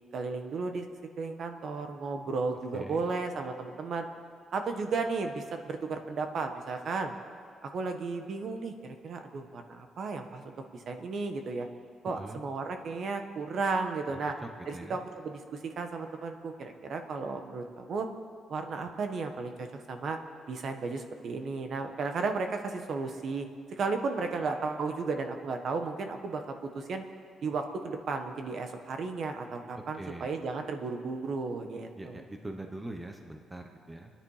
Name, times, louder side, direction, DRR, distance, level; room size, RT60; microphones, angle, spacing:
voice 1, 0.1-0.9 1.2-4.0 4.5-7.1 7.6-11.7 12.0-14.4 14.7-18.1 18.5-20.2 20.5-23.5 23.8-27.0 27.4-32.2, right 4 dB, 50° right, 6 dB, 1.3 m, -34 dB
voice 2, 12.1-12.4 14.1-15.0 30.0-30.3 31.9-34.1, right 1 dB, 10° right, 4 dB, 0.9 m, -43 dB
26.5 x 10.5 x 4.9 m, 2.3 s
cardioid pair, 160°, 0 cm